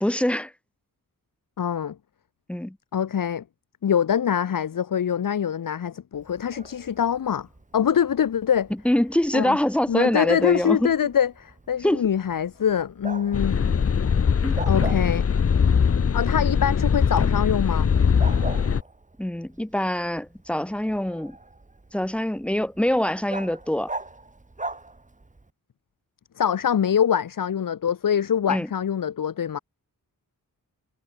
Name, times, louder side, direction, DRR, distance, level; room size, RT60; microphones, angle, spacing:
voice 1, 0.0-0.5 2.5-2.8 8.8-10.9 11.8-12.0 14.4-14.6 19.2-21.4 21.9-23.9 28.5-28.7, left 1 dB, 5° left, 0.7 m, -24 dB
voice 2, 1.6-1.9 2.9-3.4 3.8-7.5 7.7-8.7 9.3-9.6 9.9-13.7 14.7-15.3 16.1-17.9 26.4-29.6, left 8 dB, 70° left, 1.1 m, -24 dB
Bark, 6.1-25.5, right 2 dB, 20° right, 6.1 m, -42 dB
sound 1, 13.3-18.8, left 6 dB, 40° left, 0.9 m, -21 dB
wide cardioid pair, 165°, 35 cm